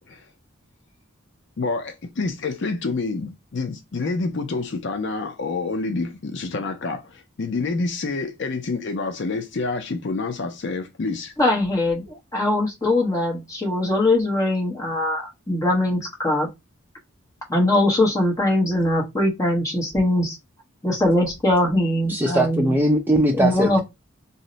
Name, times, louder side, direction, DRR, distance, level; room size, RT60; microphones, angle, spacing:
voice 1, 1.6-11.3, left 3 dB, 55° left, 0.5 m, -28 dB
voice 2, 11.4-16.5 17.5-20.4 20.8-22.7 23.3-23.8, left 1 dB, 15° left, 0.9 m, -21 dB
voice 3, 22.1-23.8, right 1 dB, 10° right, 0.4 m, -20 dB
2.6 x 2.1 x 3.9 m
head